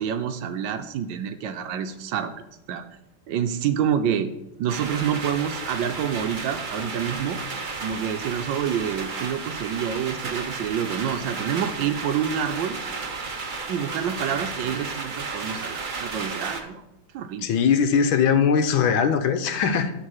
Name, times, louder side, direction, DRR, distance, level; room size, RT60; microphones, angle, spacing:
voice 1, 0.0-2.3 2.7-2.8 3.3-4.3 4.6-7.4 7.8-12.8 13.7-16.8 17.1-17.5, right 8 dB, 75° right, 9 dB, 1.3 m, -27 dB
sound 1, 4.7-16.6, right 4 dB, 50° right, 0.5 m, -33 dB
voice 2, 17.4-19.9, left 6 dB, 80° left, 8 dB, 1.6 m, -20 dB
11.5 x 3.8 x 6.4 m, 0.90 s
omnidirectional pair, 2.2 m